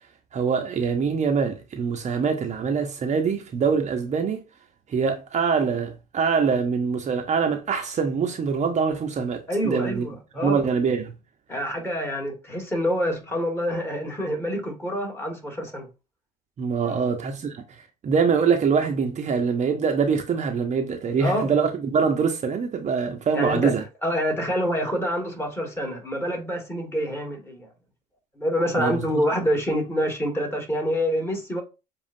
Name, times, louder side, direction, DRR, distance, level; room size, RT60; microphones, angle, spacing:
voice 1, 0.3-4.4 4.9-10.1 10.4-11.1 16.6-23.8 28.8-29.2, right 5 dB, 35° right, 0.8 m, -24 dB
voice 2, 9.5-10.6 11.5-15.9 16.8-17.1 21.2-21.5 23.3-23.7 24.0-27.7 28.4-31.6, equal, 10° left, 2.0 m, -26 dB
7.2 x 2.5 x 2.7 m
hypercardioid pair, 80°, 20 cm